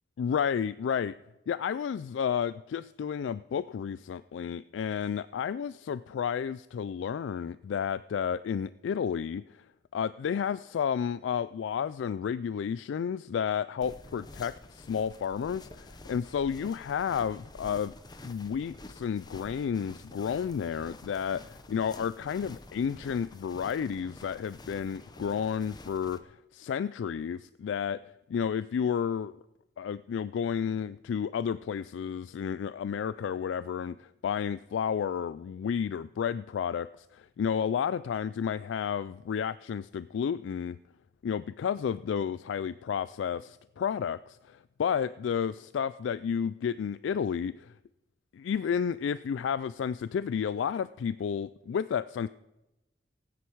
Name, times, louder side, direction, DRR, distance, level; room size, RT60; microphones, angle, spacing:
voice 1, 0.2-1.1 1.5-9.4 9.9-17.9 18.2-28.0 28.3-29.4 29.8-40.8 41.2-47.7 48.3-52.3, left 7 dB, 90° left, 15 dB, 0.3 m, -31 dB
sound 1, 13.8-26.2, left 2 dB, 20° left, 0.8 m, -49 dB
16.5 x 9.6 x 4.6 m, 0.97 s
head